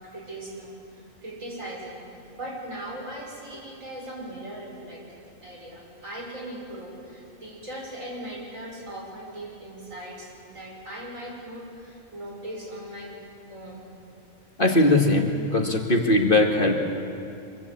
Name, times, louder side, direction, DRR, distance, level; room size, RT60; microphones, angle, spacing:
voice 1, 0.1-2.0 2.3-13.2 13.5-13.9, right 1 dB, 70° right, -2 dB, 6.6 m, -39 dB
voice 2, 14.6-16.7, left 2 dB, 40° left, 2 dB, 2.1 m, -20 dB
24.5 x 23.5 x 8.5 m, 2.6 s
omnidirectional pair, 1.4 m